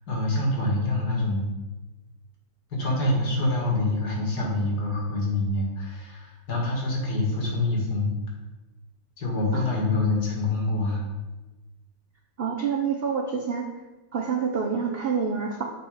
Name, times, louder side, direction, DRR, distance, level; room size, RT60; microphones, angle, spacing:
voice 1, 0.1-1.5 2.7-8.2 9.2-11.1, left 2 dB, 65° left, -1 dB, 2.3 m, -26 dB
voice 2, 12.4-13.7 14.1-15.6, right 6 dB, 65° right, 2 dB, 0.5 m, -27 dB
7.1 x 5.1 x 5.0 m, 1.1 s
omnidirectional pair, 1.8 m